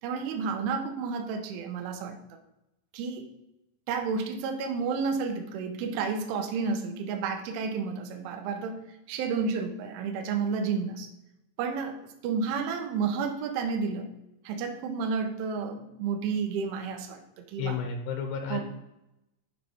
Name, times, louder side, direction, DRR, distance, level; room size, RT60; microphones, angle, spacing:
voice 1, 0.0-2.4 2.9-3.3 3.9-8.8 9.1-11.1 11.6-14.1 14.4-17.8 18.5-18.6, right 5 dB, 80° right, 6 dB, 3.3 m, -31 dB
voice 2, 17.6-18.6, left 6 dB, 80° left, 5 dB, 2.4 m, -32 dB
8.1 x 6.4 x 4.4 m, 0.90 s
omnidirectional pair, 5.7 m